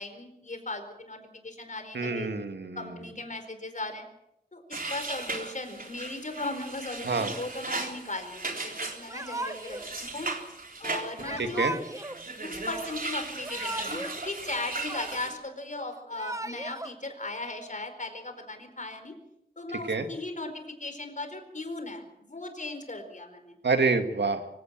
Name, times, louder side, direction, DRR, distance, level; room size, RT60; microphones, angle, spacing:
voice 1, 0.0-2.3 2.8-4.0 4.5-10.3 10.8-11.8 12.4-19.1 19.6-23.5, left 2 dB, 45° left, 7 dB, 4.6 m, -37 dB
voice 2, 1.9-2.9 7.0-7.3 11.4-11.7 19.9-20.1 23.6-24.4, right 4 dB, 90° right, 6 dB, 2.2 m, -27 dB
sound 1, 4.7-15.3, right 3 dB, 55° right, 3.6 m, -37 dB
Yell / Crying sobbing, 9.1-9.9 11.2-12.2 13.2-14.2 14.5-15.4 16.0-16.9, right 1 dB, 20° right, 1.2 m, -37 dB
24.5 x 16.5 x 7.5 m, 0.82 s
wide cardioid pair, 90°, 17 cm